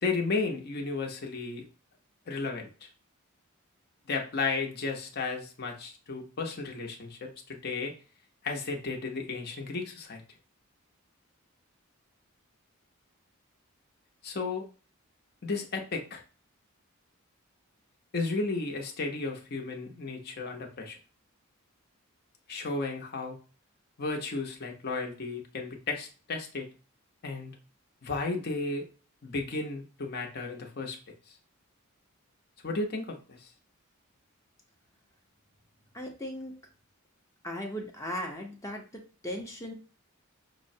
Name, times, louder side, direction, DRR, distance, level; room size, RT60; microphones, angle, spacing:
voice 1, 0.0-1.7 2.3-2.9 4.1-7.9 8.4-10.2 14.2-14.7 15.4-16.2 18.1-21.0 22.5-23.4 24.0-26.7 27.2-27.5 28.0-28.9 29.2-31.0 32.6-33.5, left 3 dB, 50° left, 2 dB, 0.8 m, -33 dB
voice 2, 35.9-36.5 37.4-39.7, equal, 15° left, 1 dB, 0.6 m, -37 dB
5.4 x 2.1 x 2.6 m, 0.35 s
head